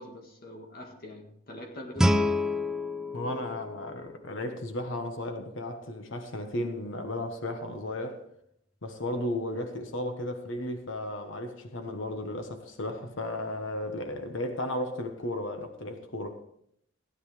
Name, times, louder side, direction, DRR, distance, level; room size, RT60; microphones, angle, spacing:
voice 1, 0.0-2.4, left 1 dB, 50° left, 1.7 m, -44 dB
Guitar, 2.0-4.7, left 1 dB, 5° right, 0.5 m, -28 dB
voice 2, 3.1-8.2 8.8-16.4, left 1 dB, 65° left, 1.3 m, -34 dB
16.0 x 10.0 x 3.3 m
head